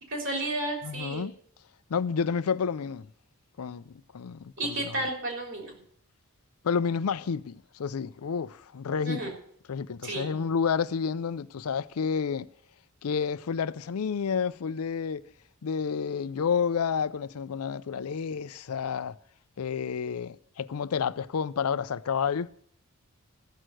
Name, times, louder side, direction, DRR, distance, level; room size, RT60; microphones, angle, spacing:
voice 1, 0.1-1.3 4.6-5.8 9.0-9.3 10.0-10.3, right 2 dB, 55° right, 3.5 m, -32 dB
voice 2, 0.8-1.3 1.9-3.1 3.6-5.1 6.6-9.3 9.7-12.5 13.0-15.2 15.6-19.2 19.6-22.5, left 6 dB, 85° left, 0.5 m, -30 dB
14.5 x 6.4 x 7.7 m
head